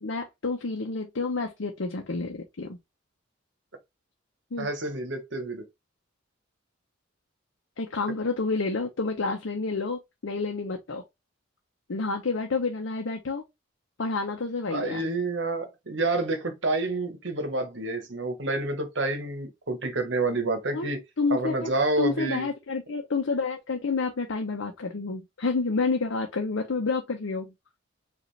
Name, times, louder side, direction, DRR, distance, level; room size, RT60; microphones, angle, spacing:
voice 1, 0.0-2.8 4.5-4.7 7.8-11.0 11.9-13.4 14.0-15.0 20.7-20.9 21.2-27.5, left 4 dB, 85° left, 0.7 m, -29 dB
voice 2, 4.6-5.6 14.7-21.0 21.3-22.5, right 2 dB, 70° right, 1.2 m, -28 dB
5.0 x 2.6 x 3.2 m
head